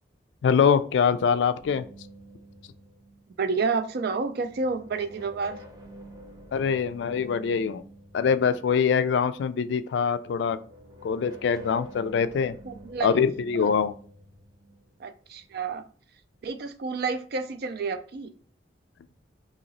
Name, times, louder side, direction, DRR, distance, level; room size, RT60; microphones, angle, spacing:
voice 1, 0.4-1.8 6.5-7.8 8.1-10.6 11.0-12.5 13.0-13.9, left 6 dB, 65° left, 13 dB, 0.3 m, -24 dB
sound 1, 1.6-3.8 4.2-9.3 10.3-15.7, equal, 20° right, 0.7 m, -48 dB
voice 2, 3.4-5.6 12.6-13.2 13.5-13.7 15.0-15.8 16.4-18.3, right 4 dB, 55° right, 10 dB, 0.4 m, -30 dB
2.9 x 2.8 x 4.0 m, 0.42 s
head